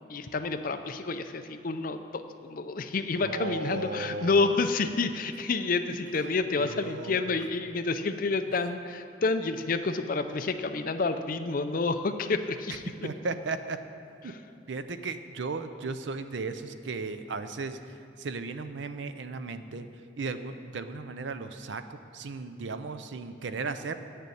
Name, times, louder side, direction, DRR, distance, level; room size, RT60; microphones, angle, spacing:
voice 1, 0.0-13.1 14.2-14.4, left 3 dB, 45° left, 9 dB, 0.5 m, -29 dB
voice 2, 3.2-4.6 6.6-7.4 13.0-13.8 14.2-14.3 14.7-17.8 18.2-19.9 20.2-23.9, right 4 dB, 70° right, 10 dB, 0.5 m, -36 dB
9.1 x 6.7 x 8.5 m, 2.8 s
head